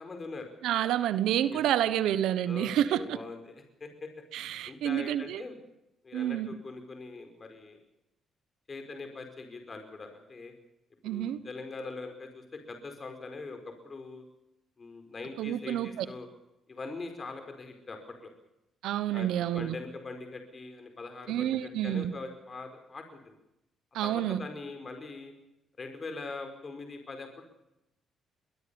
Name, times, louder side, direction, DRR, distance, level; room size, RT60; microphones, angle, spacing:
voice 1, 0.0-0.5 1.5-1.6 2.5-4.1 4.7-5.6 6.0-7.8 8.7-10.5 11.0-14.2 14.8-16.3 16.7-18.3 19.1-23.3 24.0-25.3 25.8-27.4, left 3 dB, 35° left, 6 dB, 4.8 m, -42 dB
voice 2, 0.6-3.2 4.3-5.4 6.1-6.5 11.0-11.4 15.4-16.1 18.8-19.7 21.3-22.1 23.9-24.4, right 11 dB, 85° right, 14 dB, 1.2 m, -29 dB
23.0 x 20.0 x 7.1 m, 0.89 s
cardioid pair, 90°, 0 cm